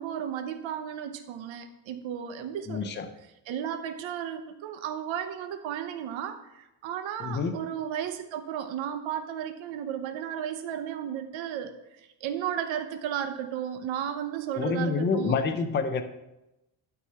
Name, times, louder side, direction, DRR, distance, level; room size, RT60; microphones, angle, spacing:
voice 1, 0.0-3.0 3.5-11.7 12.2-15.4, right 9 dB, 75° right, 8 dB, 0.9 m, -34 dB
voice 2, 2.7-3.1 7.2-7.6 14.5-16.0, left 4 dB, 25° left, 8 dB, 0.5 m, -27 dB
11.5 x 4.8 x 5.6 m, 0.93 s
cardioid pair, 175°, 46 cm